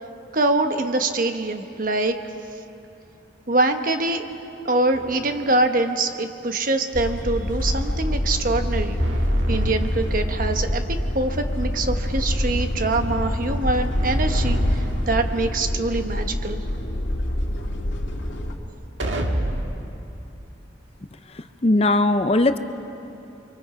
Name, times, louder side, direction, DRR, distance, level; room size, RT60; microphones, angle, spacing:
voice 1, 0.3-2.2 3.5-4.3 4.6-9.0 9.5-16.6, right 2 dB, 45° right, 6 dB, 1.1 m, -24 dB
sound 1, 4.9-5.7 9.0-10.7 14.0-15.7 19.0-19.9, equal, 70° right, 1.7 m, -27 dB
sound 2, 6.9-18.6, left 1 dB, 85° left, 2.1 m, -26 dB
voice 2, 21.6-22.6, left 2 dB, 30° left, 9 dB, 0.6 m, -18 dB
29.5 x 24.0 x 5.0 m, 2.8 s
head